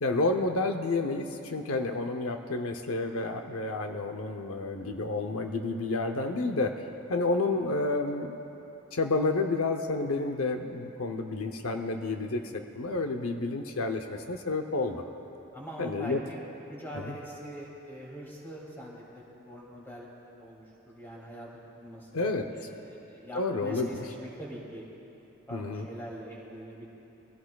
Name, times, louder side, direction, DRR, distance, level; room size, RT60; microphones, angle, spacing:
voice 1, 0.0-6.7 7.1-8.3 8.9-15.0 15.8-16.2 17.0-17.2 22.1-22.4 23.3-24.0 25.5-25.9, left 3 dB, 85° left, 5 dB, 0.7 m, -30 dB
voice 2, 15.5-20.1 20.4-21.5 21.8-24.8 25.5-26.9, equal, 10° left, -5 dB, 2.7 m, -43 dB
23.0 x 16.0 x 2.3 m, 2.9 s
head